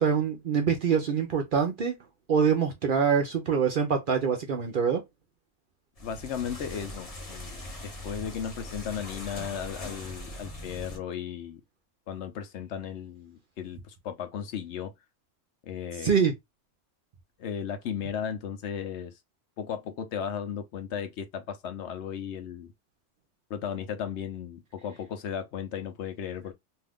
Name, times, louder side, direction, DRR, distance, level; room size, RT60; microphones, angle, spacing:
voice 1, 0.0-2.0 2.3-5.0 16.0-16.3, right 6 dB, 55° right, 0.6 m, -25 dB
voice 2, 6.0-11.6 12.1-14.9 15.6-16.2 17.4-19.1 19.6-22.7 23.5-26.5, left 8 dB, 70° left, 0.8 m, -35 dB
sound 1, 6.0-11.0, left 1 dB, 35° left, 0.8 m, -41 dB
2.6 x 2.3 x 3.4 m
omnidirectional pair, 1.3 m